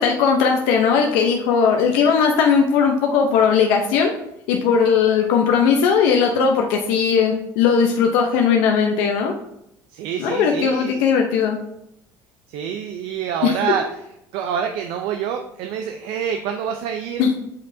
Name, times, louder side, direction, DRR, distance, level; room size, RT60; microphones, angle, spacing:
voice 1, 0.0-4.1 4.5-9.3 10.2-11.6 13.4-13.5 17.2-17.3, left 6 dB, 75° left, 2 dB, 0.7 m, -18 dB
voice 2, 9.9-11.0 12.5-13.9 14.3-17.3, right 8 dB, 75° right, 5 dB, 0.6 m, -26 dB
8.2 x 5.3 x 2.7 m, 0.81 s
supercardioid pair, 85°, 8 cm